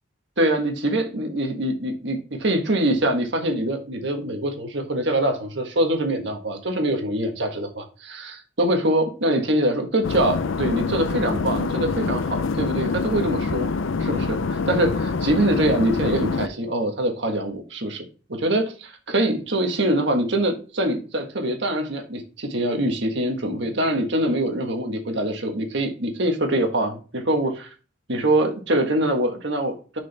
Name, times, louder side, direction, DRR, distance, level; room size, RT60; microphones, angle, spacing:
voice 1, 0.4-13.7 14.0-18.0 18.3-27.7 28.1-30.0, right 1 dB, 60° right, 4 dB, 1.6 m, -24 dB
sound 1, 10.0-16.5, left 4 dB, 75° left, 0.5 m, -25 dB
6.8 x 5.2 x 3.4 m, 0.35 s
head